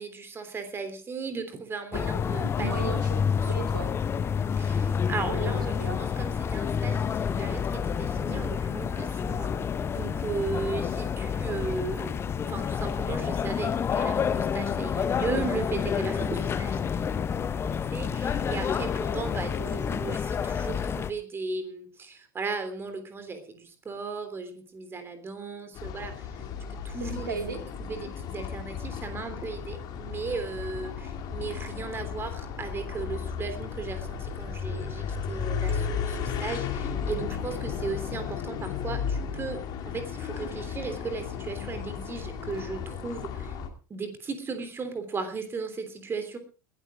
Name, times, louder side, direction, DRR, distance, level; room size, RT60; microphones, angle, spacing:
voice 1, 0.0-2.9 3.4-3.5 4.6-9.5 9.9-17.1 17.4-19.6 20.0-26.3 26.7-43.6 43.9-46.4, right 4 dB, 20° right, 9 dB, 3.3 m, -36 dB
sound 1, 1.9-21.1, left 7 dB, 25° left, 1.0 m, -29 dB
voice 2, 1.9-3.9 5.3-6.0 19.6-20.0 27.0-27.6, right 4 dB, 75° right, 5 dB, 2.9 m, -37 dB
sound 2, 25.7-43.7, left 7 dB, 40° left, 2.6 m, -34 dB
sound 3, 35.7-38.1, right 16 dB, 55° right, 1.1 m, -46 dB
20.5 x 13.0 x 3.6 m, 0.35 s
figure-of-eight pair, 80°, 11 cm